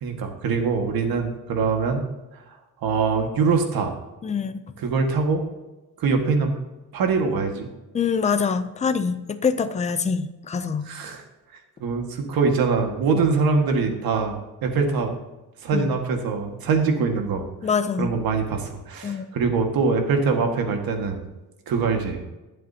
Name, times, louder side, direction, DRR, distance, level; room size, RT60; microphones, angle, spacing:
voice 1, 0.0-2.0 2.8-3.9 4.8-5.4 6.0-6.5 6.9-7.7 10.9-11.2 11.8-15.1 15.6-17.5 18.0-21.2 21.7-22.2, right 4 dB, 65° right, 4 dB, 1.8 m, -23 dB
voice 2, 4.2-4.6 7.9-10.9 15.7-15.9 17.6-18.1 19.0-19.3, left 6 dB, 20° left, 10 dB, 0.4 m, -24 dB
21.0 x 7.7 x 2.8 m, 1.1 s
cardioid pair, 175°, 39 cm